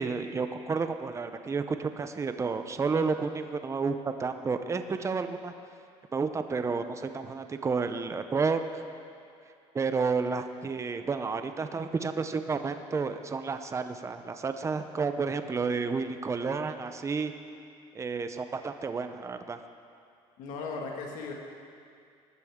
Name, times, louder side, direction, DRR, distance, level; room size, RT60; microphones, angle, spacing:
voice 1, 0.0-5.5 6.1-8.6 9.7-17.3 17.9-19.6, right 4 dB, 20° right, 8 dB, 0.7 m, -31 dB
voice 2, 20.4-21.3, left 4 dB, 75° left, 0 dB, 2.1 m, -37 dB
20.0 x 12.5 x 3.7 m, 2.4 s
cardioid pair, 105°, 13 cm